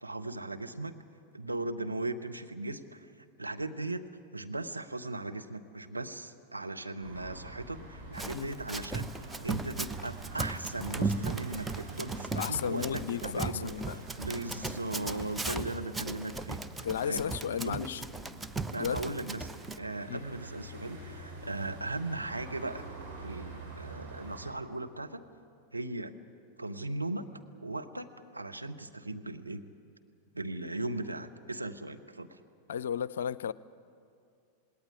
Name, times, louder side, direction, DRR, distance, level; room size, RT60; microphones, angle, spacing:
voice 1, 0.0-0.9 1.3-3.1 3.4-13.7 14.2-16.6 17.1-17.2 17.6-17.9 18.7-19.5 19.8-22.8 23.2-25.2 25.7-26.1 26.6-27.3 27.6-29.6 30.3-32.4, right 2 dB, 85° right, 0.9 m, -38 dB
sound 1, 7.0-24.5, right 3 dB, 50° right, 5.0 m, -46 dB
Run, 8.1-19.8, right 3 dB, 10° right, 0.6 m, -37 dB
voice 2, 12.3-14.0 15.5-15.7 16.8-18.0 18.7-19.0 20.1-20.2 32.7-33.5, left 8 dB, 65° left, 0.5 m, -34 dB
19.0 x 18.0 x 9.9 m
figure-of-eight pair, 90°, 0 cm